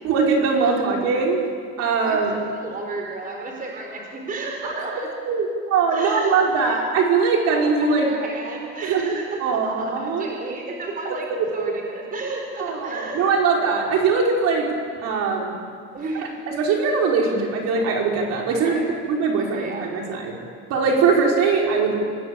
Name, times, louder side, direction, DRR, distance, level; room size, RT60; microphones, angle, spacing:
voice 1, 0.0-1.4 1.8-2.3 4.9-5.0 5.2-8.1 8.8-9.1 9.4-10.3 11.1-11.2 11.6-11.7 12.6-14.7 15.0-15.6 16.5-18.7 19.1-20.3 20.7-21.9, right 4 dB, 60° right, -1 dB, 5.6 m, -21 dB
voice 2, 2.5-5.1 5.9-6.8 7.5-13.3 15.9-16.4 18.5-18.9 19.4-19.9, right 3 dB, 30° right, 1 dB, 4.5 m, -32 dB
27.5 x 20.5 x 8.9 m, 2.1 s
cardioid pair, 155°, 30 cm